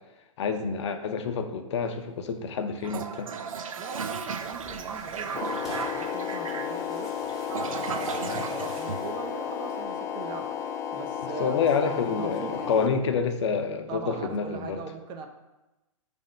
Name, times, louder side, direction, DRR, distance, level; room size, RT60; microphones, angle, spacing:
voice 1, 0.4-3.3 8.3-8.4 11.4-14.8, left 6 dB, 55° left, 7 dB, 0.9 m, -28 dB
Toilet flush, 2.8-9.7, right 6 dB, 75° right, 0.7 m, -36 dB
voice 2, 3.8-7.1 7.6-10.5 10.9-13.2 13.9-15.3, right 5 dB, 25° right, 5 dB, 0.8 m, -40 dB
Tearing, 3.9-9.2, equal, ahead, 2.2 m, -47 dB
sound 1, 5.3-12.9, left 8 dB, 15° left, 0.3 m, -33 dB
8.9 x 3.6 x 5.3 m, 1.0 s
hypercardioid pair, 130°, 17 cm